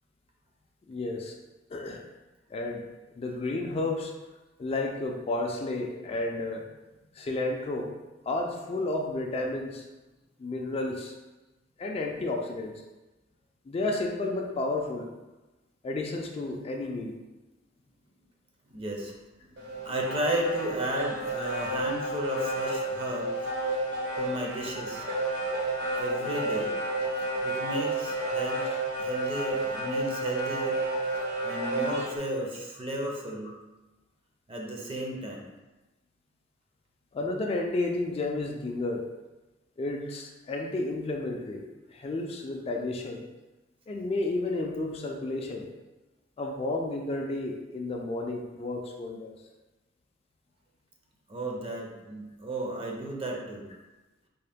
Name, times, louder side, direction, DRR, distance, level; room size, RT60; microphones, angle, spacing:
voice 1, 0.9-1.3 1.7-2.0 2.5-2.9 3.2-4.1 4.6-6.6 7.2-7.9 8.3-9.8 10.4-11.2 11.8-12.7 13.7-15.1 15.8-17.2 21.4-21.6 28.6-28.8 37.1-39.1 39.8-41.6 41.9-43.2 43.9-45.7 46.4-49.4, left 2 dB, 30° left, 1 dB, 0.3 m, -32 dB
voice 2, 18.7-19.1 19.5-23.5 24.2-25.1 26.0-26.8 27.4-28.6 29.0-30.8 31.4-33.5 34.5-35.5 51.3-53.7, right 1 dB, 30° right, 0 dB, 0.5 m, -33 dB
sound 1, 19.6-32.2, right 1 dB, 60° right, 1.0 m, -31 dB
3.6 x 2.4 x 3.5 m, 1.1 s
head